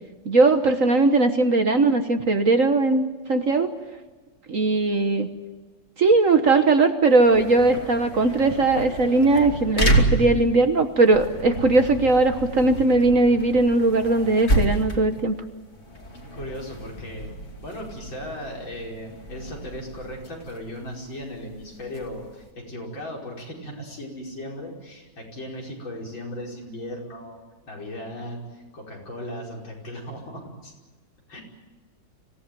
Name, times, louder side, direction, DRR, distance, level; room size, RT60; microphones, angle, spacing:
voice 1, 0.2-3.7 4.5-5.3 6.0-15.3, right 3 dB, 45° right, 7 dB, 1.5 m, -19 dB
sound 1, 7.1-22.5, right 1 dB, 35° left, 3.0 m, -29 dB
voice 2, 16.3-17.3 17.6-27.4 27.7-30.7 31.3-31.4, left 1 dB, 75° left, -1 dB, 6.1 m, -37 dB
26.0 x 17.0 x 9.3 m, 1.3 s
omnidirectional pair, 2.1 m